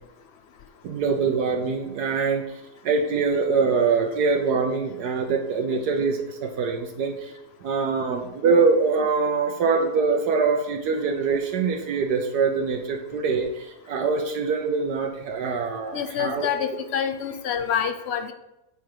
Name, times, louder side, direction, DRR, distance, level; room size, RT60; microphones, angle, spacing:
voice 1, 0.8-7.3 7.6-16.8, right 5 dB, 85° right, 2 dB, 1.4 m, -24 dB
voice 2, 15.9-18.3, left 8 dB, 60° left, 8 dB, 0.7 m, -27 dB
8.5 x 4.5 x 4.9 m, 0.92 s
omnidirectional pair, 1.7 m